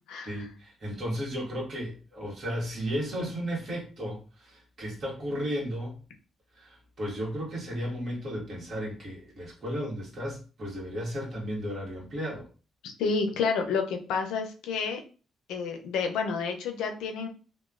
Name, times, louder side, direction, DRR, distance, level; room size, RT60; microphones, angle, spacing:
voice 1, 0.2-6.0 6.5-12.5, equal, 50° right, -3 dB, 1.2 m, -34 dB
voice 2, 12.8-15.0 15.5-17.3, left 5 dB, 90° left, 4 dB, 0.5 m, -29 dB
3.0 x 2.1 x 2.4 m, 0.36 s
cardioid pair, 90°, 0 cm